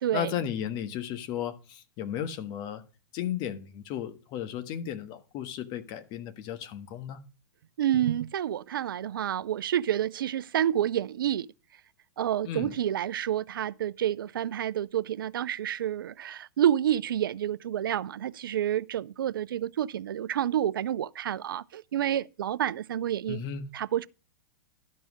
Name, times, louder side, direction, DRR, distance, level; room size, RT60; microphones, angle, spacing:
voice 1, 0.1-2.8 3.1-7.2 12.4-12.7 23.3-23.7, left 9 dB, 40° left, 1.4 m, -34 dB
voice 2, 7.8-11.5 12.2-23.4 23.7-24.1, right 11 dB, 80° right, 0.5 m, -29 dB
12.0 x 5.4 x 6.3 m
hypercardioid pair, 120°, 11 cm